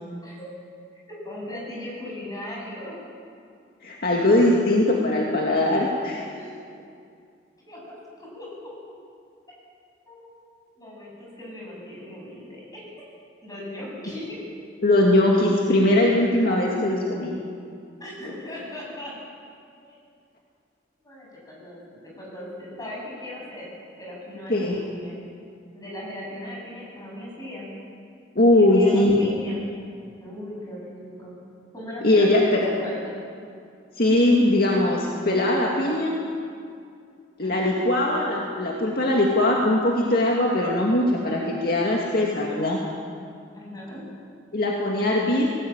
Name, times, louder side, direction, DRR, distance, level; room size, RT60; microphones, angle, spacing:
voice 1, 1.1-3.0 6.3-6.5 7.6-8.5 10.1-10.3 10.8-13.0 13.4-14.4 18.0-19.1 19.8-20.0 21.0-23.7 24.0-25.2 25.7-27.7 28.5-29.7 30.2-31.4 31.7-33.2 37.4-37.8 43.5-44.0, left 1 dB, 20° left, -4 dB, 7.9 m, -38 dB
voice 2, 3.8-6.2 14.8-17.4 24.5-24.8 28.4-29.1 32.0-32.6 34.0-36.1 37.4-42.8 44.5-45.5, left 1 dB, 55° left, -2 dB, 2.3 m, -20 dB
19.0 x 18.5 x 9.0 m, 2.3 s
head